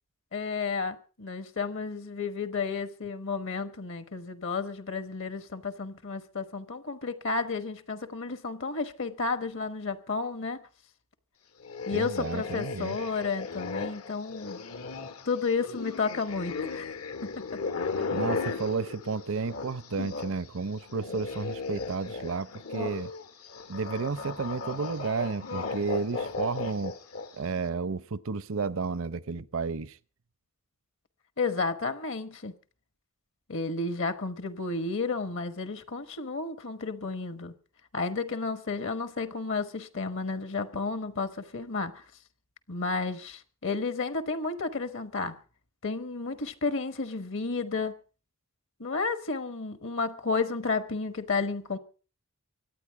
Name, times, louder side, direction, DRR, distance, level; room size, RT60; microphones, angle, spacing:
voice 1, 0.3-10.6 11.9-14.6 15.2-16.9 17.2-17.6 31.4-32.5 33.5-37.5 37.9-42.0 42.7-45.3 45.8-48.0 48.8-51.8, left 4 dB, 60° left, 1.2 m, -32 dB
sound 1, 11.6-20.4 20.7-27.5, left 4 dB, 85° left, 1.7 m, -36 dB
voice 2, 11.9-13.0 18.1-23.1 23.7-26.9 27.4-30.0, right 4 dB, 65° right, 0.7 m, -32 dB
24.5 x 9.1 x 4.7 m
head